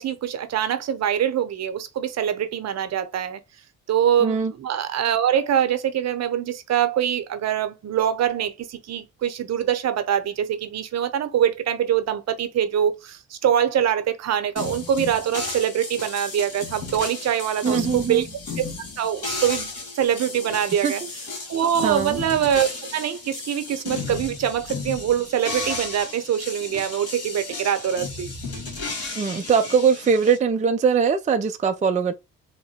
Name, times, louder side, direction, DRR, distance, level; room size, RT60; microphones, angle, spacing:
voice 1, 0.0-3.4 3.9-18.3 18.6-18.7 19.0-21.0 21.5-28.3, right 9 dB, 60° right, 0.8 m, -24 dB
voice 2, 4.2-4.5 17.6-18.2 20.8-20.9 21.8-22.2 29.2-32.1, right 6 dB, 25° right, 0.4 m, -21 dB
sound 1, 14.6-30.4, left 3 dB, 55° left, 2.1 m, -34 dB
3.6 x 2.2 x 4.2 m
cardioid pair, 90°, 30 cm